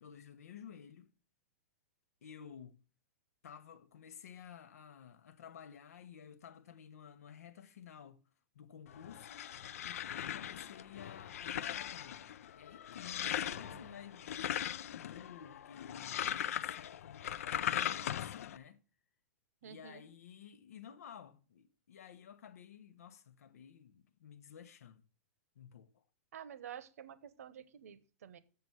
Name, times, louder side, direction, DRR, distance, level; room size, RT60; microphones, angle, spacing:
voice 1, 0.0-1.1 2.2-2.8 3.4-8.2 8.5-9.4 9.8-14.4 14.9-18.8 19.6-25.0 25.5-26.0, left 8 dB, 90° left, 1.0 m, -53 dB
sound 1, 8.9-18.6, left 10 dB, 75° left, 0.4 m, -39 dB
voice 2, 13.2-14.0 19.6-20.0 26.3-28.4, right 8 dB, 80° right, 0.9 m, -50 dB
7.1 x 6.7 x 5.9 m
supercardioid pair, 175°, 8 cm